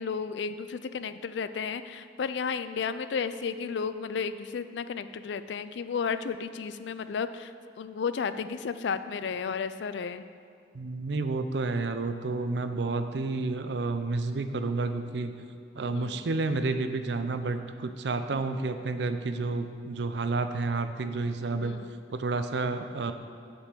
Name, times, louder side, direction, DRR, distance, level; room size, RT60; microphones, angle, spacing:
voice 1, 0.0-7.5 7.8-10.2 15.9-16.2 21.5-21.9, left 6 dB, 75° left, 12 dB, 0.4 m, -33 dB
voice 2, 10.7-15.5 15.8-21.8 22.1-23.1, right 3 dB, 70° right, 9 dB, 0.5 m, -30 dB
7.3 x 5.4 x 6.7 m, 2.4 s
head